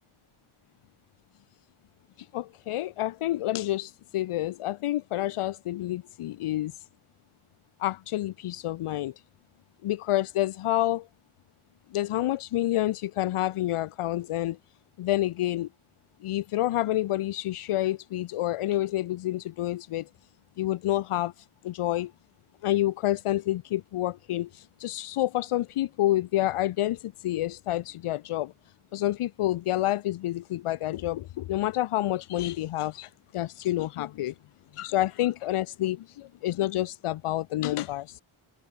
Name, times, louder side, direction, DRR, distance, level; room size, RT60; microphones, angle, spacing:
voice 1, 2.2-6.9 7.8-9.1 9.8-11.1 11.9-14.6 15.0-15.7 16.2-20.1 20.6-22.1 22.6-28.5 28.9-34.3 34.7-38.2, left 14 dB, 80° left, 0.6 m, -28 dB
wide cardioid pair, 115°, 50 cm